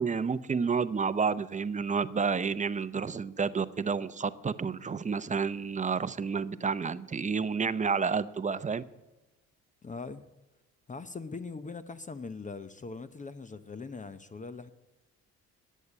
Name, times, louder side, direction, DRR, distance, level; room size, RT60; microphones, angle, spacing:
voice 1, 0.0-8.8, right 5 dB, 25° right, 0.6 m, -30 dB
voice 2, 9.8-10.2 10.9-14.7, left 4 dB, 25° left, 0.7 m, -41 dB
11.0 x 8.2 x 8.4 m
cardioid pair, 90°, 30 cm